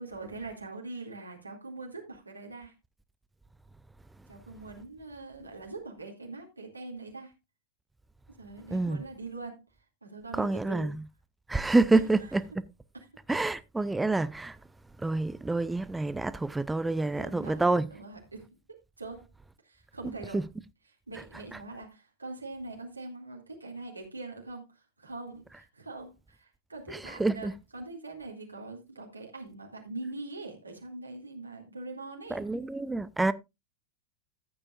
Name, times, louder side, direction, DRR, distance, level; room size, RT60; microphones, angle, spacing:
voice 1, 0.0-2.7 4.3-7.3 8.3-9.6 10.0-10.9 11.9-12.3 12.9-13.1 17.1-17.6 17.9-19.3 19.6-20.5 20.8-32.5, right 3 dB, 80° right, 2.4 m, -43 dB
voice 2, 8.7-9.0 10.4-11.0 11.5-12.4 13.3-14.6 15.0-17.9 20.3-20.4 27.2-27.5 32.3-33.3, right 2 dB, 5° right, 0.5 m, -27 dB
14.0 x 8.7 x 2.5 m
figure-of-eight pair, 90°, 0 cm